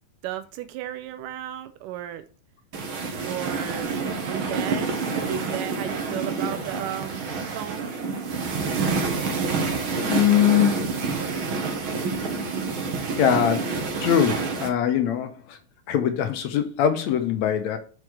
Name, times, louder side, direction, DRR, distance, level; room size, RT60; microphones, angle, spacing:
voice 1, 0.2-2.3 3.2-4.0 4.3-4.9 5.2-7.9, right 12 dB, 90° right, 2.2 m, -34 dB
sound 1, 2.7-14.7, right 4 dB, 55° right, 1.5 m, -28 dB
voice 2, 10.1-10.9 13.2-15.6 15.9-17.8, left 9 dB, 75° left, 1.9 m, -22 dB
6.4 x 6.1 x 4.7 m
omnidirectional pair, 3.7 m